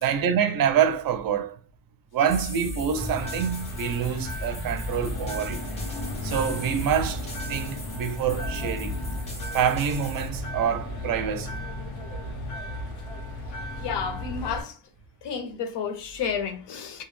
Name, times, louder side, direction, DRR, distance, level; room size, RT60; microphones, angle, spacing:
voice 1, 0.0-1.6 2.1-5.6 6.2-8.9 9.5-11.6, right 8 dB, 45° right, 0.5 m, -26 dB
sound 1, 2.3-10.3, left 1 dB, 15° left, 0.6 m, -38 dB
sound 2, 3.0-14.6, left 1 dB, 90° left, 0.9 m, -34 dB
voice 2, 13.7-14.8 15.2-17.0, left 6 dB, 60° left, 0.7 m, -31 dB
2.2 x 2.0 x 3.1 m
cardioid pair, 105°, 49 cm